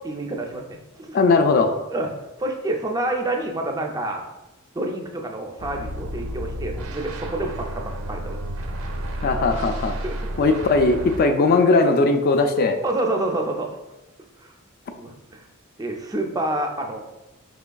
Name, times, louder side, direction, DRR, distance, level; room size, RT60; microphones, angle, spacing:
voice 1, 0.0-1.2 1.9-2.1 2.4-4.2 4.7-8.4 10.0-10.2 10.5-10.6 12.8-13.8 14.4-14.5 14.9-15.5 15.8-17.0, right 1 dB, 15° right, 3 dB, 0.4 m, -28 dB
voice 2, 1.1-1.9 9.2-10.0 10.4-12.8, left 3 dB, 45° left, 6 dB, 0.4 m, -19 dB
sound 1, 5.6-11.2, right 1 dB, 70° right, 0.5 m, -31 dB
5.0 x 3.5 x 2.2 m, 0.99 s
head